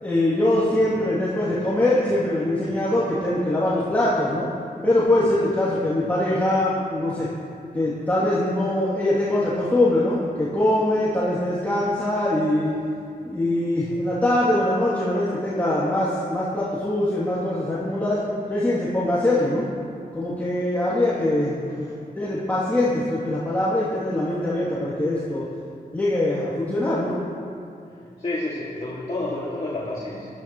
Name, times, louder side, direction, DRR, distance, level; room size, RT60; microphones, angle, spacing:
voice 1, 0.0-4.5 4.8-7.3 7.7-12.7 13.2-18.2 18.5-19.6 20.1-21.6 22.1-25.5 25.9-27.2, left 1 dB, 10° left, -10 dB, 2.6 m, -22 dB
voice 2, 28.2-30.3, left 2 dB, 40° left, -6 dB, 2.1 m, -30 dB
18.0 x 13.0 x 3.0 m, 2.4 s
wide cardioid pair, 80°, 17 cm